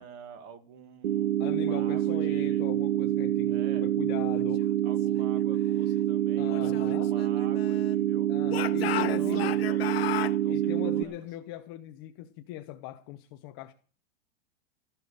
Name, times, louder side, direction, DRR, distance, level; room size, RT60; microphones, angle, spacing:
voice 1, 0.0-2.6 3.5-3.9 4.8-8.4 8.7-11.2, right 7 dB, 25° right, 1.7 m, -48 dB
sound 1, 1.0-11.0, right 12 dB, 55° right, 0.9 m, -27 dB
voice 2, 1.4-4.7 6.4-7.1 8.3-9.5 10.4-13.7, left 14 dB, 25° left, 0.7 m, -40 dB
Speech / Shout, 6.5-8.0 8.5-10.4, left 12 dB, 75° left, 1.2 m, -35 dB
15.5 x 7.0 x 9.9 m
supercardioid pair, 180°, 31 cm